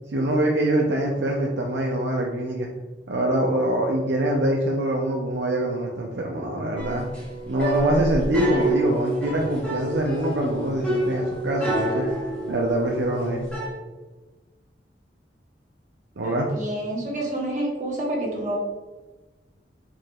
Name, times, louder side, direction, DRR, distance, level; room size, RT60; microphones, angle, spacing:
voice 1, 0.1-2.7 3.1-7.0 7.5-12.1 12.5-13.5 16.2-16.5, right 1 dB, 75° right, -1 dB, 0.5 m, -24 dB
sound 1, 6.8-13.7, right 1 dB, 10° left, 1.5 m, -29 dB
voice 2, 16.2-18.6, right 1 dB, 45° right, -3 dB, 1.2 m, -28 dB
4.7 x 4.6 x 2.3 m, 1.2 s
head